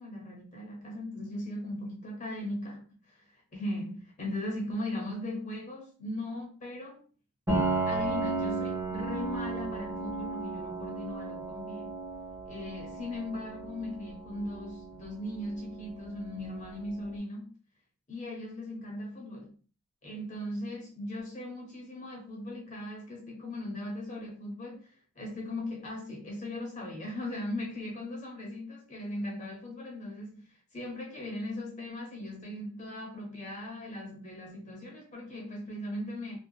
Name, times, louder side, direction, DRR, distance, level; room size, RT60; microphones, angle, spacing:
voice 1, 0.0-7.0 7.9-12.0 12.5-17.5 18.1-19.5 20.0-36.4, left 1 dB, 35° left, 0.8 m, -38 dB
Piano, 7.5-17.0, right 3 dB, 15° right, 1.0 m, -35 dB
2.6 x 2.3 x 2.3 m
head